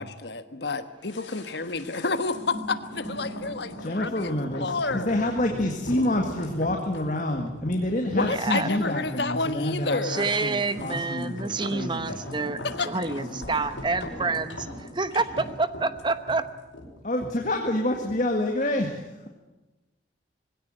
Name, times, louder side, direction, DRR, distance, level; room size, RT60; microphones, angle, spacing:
voice 1, 0.0-5.3 8.0-10.3 12.8-12.9, left 3 dB, 65° left, 11 dB, 1.3 m, -30 dB
sound 1, 1.1-18.3 18.6-18.7, left 1 dB, 90° left, 5.3 m, -40 dB
voice 2, 3.8-12.2 13.3-13.6 17.0-19.3, left 1 dB, 40° left, 3 dB, 1.9 m, -28 dB
voice 3, 8.1-8.7 10.0-16.4, right 3 dB, 25° right, 12 dB, 1.0 m, -28 dB
21.0 x 17.0 x 9.1 m, 1.1 s
head